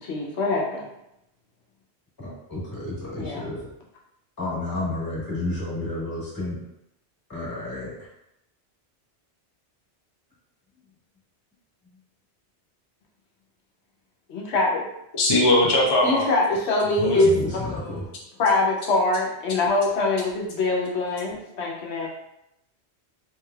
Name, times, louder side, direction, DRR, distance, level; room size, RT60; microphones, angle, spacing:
voice 1, 0.0-0.9 3.2-3.4 14.3-14.9 16.0-18.0 18.4-22.1, left 2 dB, 80° left, -2 dB, 0.9 m, -23 dB
voice 2, 2.2-3.7 4.4-6.6 7.3-8.1 17.1-18.1, left 2 dB, 20° left, -7 dB, 1.4 m, -31 dB
voice 3, 15.1-16.3 17.0-17.2, left 1 dB, 45° left, -2 dB, 0.3 m, -19 dB
3.4 x 3.2 x 2.3 m, 0.83 s
omnidirectional pair, 1.1 m